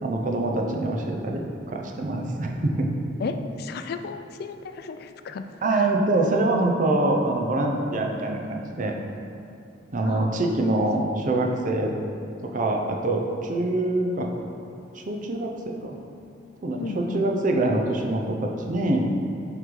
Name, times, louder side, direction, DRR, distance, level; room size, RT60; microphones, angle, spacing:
voice 1, 0.0-2.9 5.6-8.9 9.9-11.9 12.5-14.3 14.9-15.9 16.6-19.1, right 2 dB, 45° right, 1 dB, 0.6 m, -25 dB
voice 2, 3.2-5.9 10.0-10.8 16.8-17.3, left 4 dB, 55° left, 8 dB, 0.3 m, -34 dB
7.8 x 3.2 x 3.8 m, 2.7 s
head